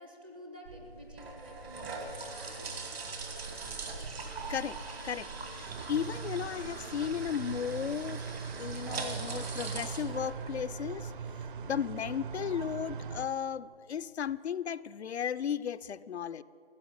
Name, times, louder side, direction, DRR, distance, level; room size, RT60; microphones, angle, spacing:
voice 1, 0.0-2.7, equal, 10° right, 1 dB, 0.4 m, -50 dB
sound 1, 0.7-11.0, right 3 dB, 70° right, 2.4 m, -41 dB
voice 2, 4.5-8.2 8.6-11.1 11.6-16.4, left 8 dB, 85° left, 16 dB, 0.5 m, -35 dB
sound 2, 5.7-13.3, right 6 dB, 55° right, 0.8 m, -41 dB
14.5 x 6.6 x 9.8 m, 2.6 s
figure-of-eight pair, 145°, 32 cm